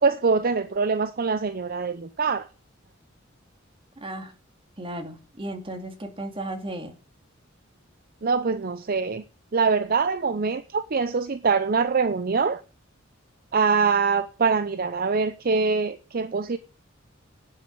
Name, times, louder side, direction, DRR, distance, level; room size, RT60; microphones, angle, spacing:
voice 1, 0.0-2.5 8.2-9.2 9.5-12.6 13.5-16.6, right 5 dB, 45° right, 0.6 m, -24 dB
voice 2, 4.0-4.3 4.8-6.9, right 1 dB, 25° right, 2.5 m, -35 dB
11.5 x 7.4 x 8.6 m
head